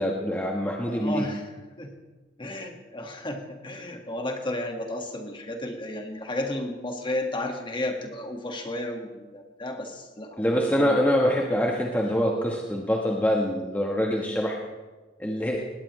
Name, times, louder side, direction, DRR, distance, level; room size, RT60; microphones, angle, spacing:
voice 1, 0.0-1.3 10.4-14.6 15.2-15.6, equal, 10° left, -1 dB, 1.2 m, -25 dB
voice 2, 0.9-1.5 1.8-1.9 2.4-11.0 11.4-11.5, left 1 dB, 25° left, 3 dB, 1.7 m, -33 dB
19.5 x 17.5 x 3.2 m, 1.3 s
head